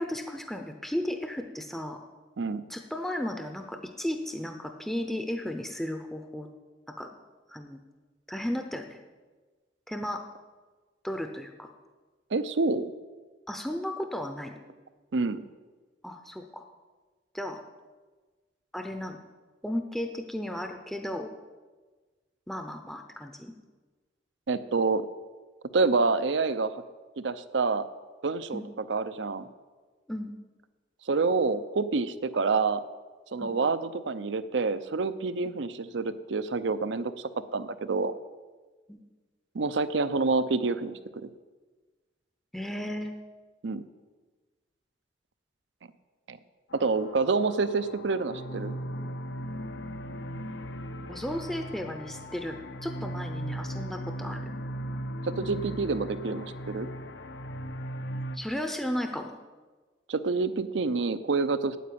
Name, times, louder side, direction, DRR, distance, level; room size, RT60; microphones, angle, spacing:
voice 1, 0.0-2.0 2.7-6.5 7.0-7.1 7.5-7.8 8.3-9.0 9.9-10.3 11.0-11.7 13.5-14.6 16.0-16.7 17.3-17.6 18.7-19.2 19.6-21.3 22.5-23.5 28.5-28.7 30.1-30.3 33.4-33.6 38.9-39.0 42.5-43.1 51.1-54.4 58.3-59.4, left 1 dB, ahead, 5 dB, 0.6 m, -34 dB
voice 2, 12.3-12.9 15.1-15.5 24.5-25.1 25.7-26.7 27.2-27.8 28.2-29.5 31.1-32.8 33.3-38.1 39.5-41.3 43.6-43.8 46.3-46.4 46.7-48.8 55.2-56.9 60.1-61.8, right 4 dB, 75° right, 13 dB, 0.6 m, -27 dB
Storm cloud, 46.7-58.4, equal, 75° left, 0.8 m, -37 dB
9.3 x 8.4 x 8.6 m, 1.3 s
head